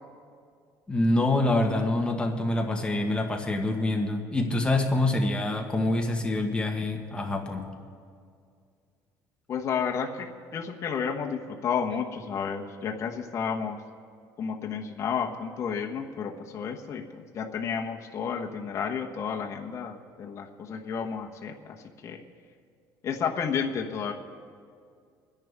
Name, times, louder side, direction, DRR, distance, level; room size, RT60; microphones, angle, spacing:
voice 1, 0.9-7.7, left 2 dB, 15° left, 2 dB, 1.3 m, -26 dB
voice 2, 9.5-13.8 14.4-21.7 22.0-22.2 23.0-24.1, left 6 dB, 40° left, 1 dB, 1.2 m, -31 dB
25.5 x 10.5 x 3.6 m, 2.2 s
cardioid pair, 135°, 8 cm